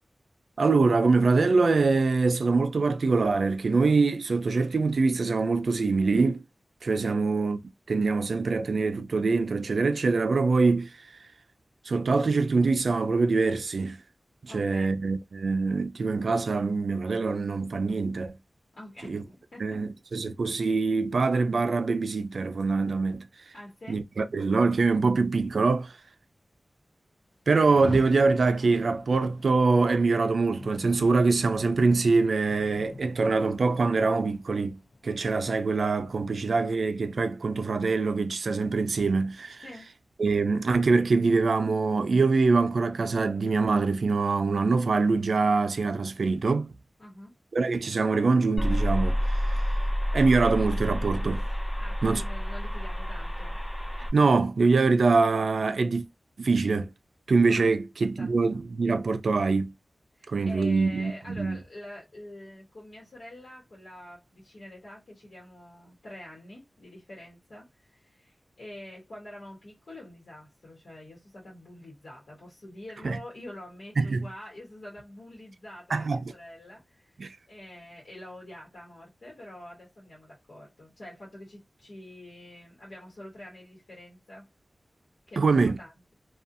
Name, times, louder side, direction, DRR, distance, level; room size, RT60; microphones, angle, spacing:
voice 1, 0.6-6.4 6.8-7.6 7.9-10.9 11.9-14.0 14.4-18.4 19.1-19.2 19.6-23.2 23.9-25.9 27.5-39.6 40.2-46.7 47.5-49.6 50.1-51.4 52.0-52.2 54.1-56.1 56.4-56.9 57.3-59.7 60.3-61.6 73.0-73.2 74.0-74.2 75.9-76.2 77.2-77.3 85.4-85.8, right 4 dB, 90° right, 0.3 m, -24 dB
voice 2, 14.5-15.0 18.7-19.8 23.5-24.0 39.6-39.9 47.0-47.3 51.8-53.6 57.5-58.6 60.1-77.2 77.5-84.5 85.3-86.1, left 1 dB, 75° left, 1.1 m, -46 dB
Rain, 27.5-36.6, left 2 dB, 55° left, 0.5 m, -45 dB
sound 1, 48.6-54.1, equal, 30° left, 1.2 m, -28 dB
2.6 x 2.3 x 2.5 m
wide cardioid pair, 90°, 0 cm